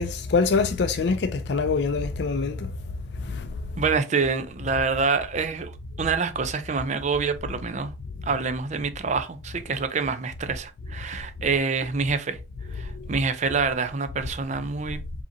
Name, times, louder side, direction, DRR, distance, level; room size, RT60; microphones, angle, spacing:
voice 1, 0.0-2.7 3.2-3.5, left 4 dB, 65° left, 0.4 m, -24 dB
voice 2, 3.8-7.9 8.3-12.4 12.7-15.0, right 4 dB, 40° right, 0.5 m, -26 dB
5.0 x 2.8 x 2.8 m
head